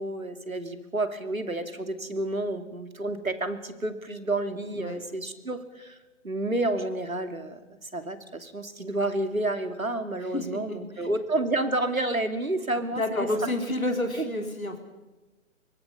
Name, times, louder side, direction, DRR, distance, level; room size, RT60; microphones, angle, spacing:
voice 1, 0.0-6.0 6.2-13.5 14.2-14.3, right 2 dB, 90° right, 8 dB, 2.7 m, -30 dB
voice 2, 10.2-11.1 12.9-14.8, left 1 dB, 90° left, 4 dB, 3.5 m, -30 dB
26.0 x 23.5 x 5.5 m, 1.1 s
figure-of-eight pair, 140°, 40 cm